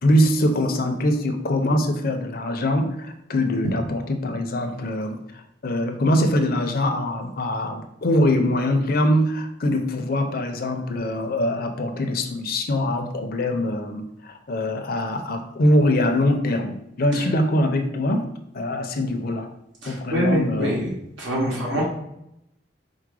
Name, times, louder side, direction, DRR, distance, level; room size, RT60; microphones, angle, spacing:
voice 1, 0.0-5.2 5.6-18.3 18.5-19.5 19.8-20.7 21.5-21.8, left 1 dB, 50° left, 6 dB, 0.5 m, -23 dB
voice 2, 19.8-21.8, equal, 80° right, -3 dB, 1.5 m, -25 dB
4.6 x 2.1 x 4.7 m, 0.80 s
head